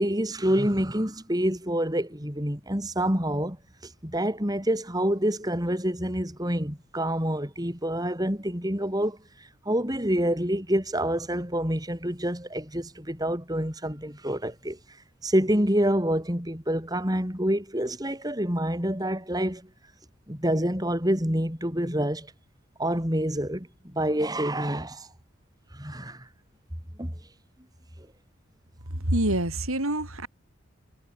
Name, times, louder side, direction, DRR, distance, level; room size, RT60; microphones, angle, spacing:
voice 1, 0.0-3.6 3.8-15.0 15.2-19.7 20.3-22.3 22.8-25.1 25.7-26.3 27.0-27.1, right 1 dB, 20° right, 5.5 m, -27 dB
voice 2, 29.1-30.3, right 1 dB, 90° right, 7.4 m, -26 dB
head